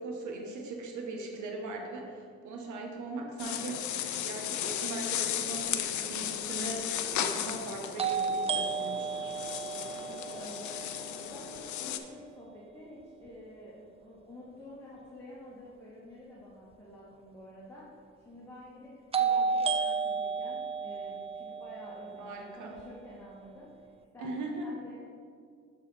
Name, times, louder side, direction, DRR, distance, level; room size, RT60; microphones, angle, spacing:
voice 1, 0.0-3.9 4.2-9.3 22.2-22.8 24.2-24.7, right 2 dB, 75° right, 1 dB, 1.1 m, -39 dB
sound 1, 3.4-12.0, left 10 dB, 70° left, 0.6 m, -35 dB
sound 2, 6.0-6.1 8.0-11.9 19.1-23.2, right 5 dB, 20° right, 0.4 m, -33 dB
voice 2, 9.7-10.7 11.1-17.8 18.2-23.9 24.1-25.0, left 1 dB, 10° left, -8 dB, 1.7 m, -49 dB
10.5 x 4.0 x 4.1 m, 2.1 s
cardioid pair, 90°, 30 cm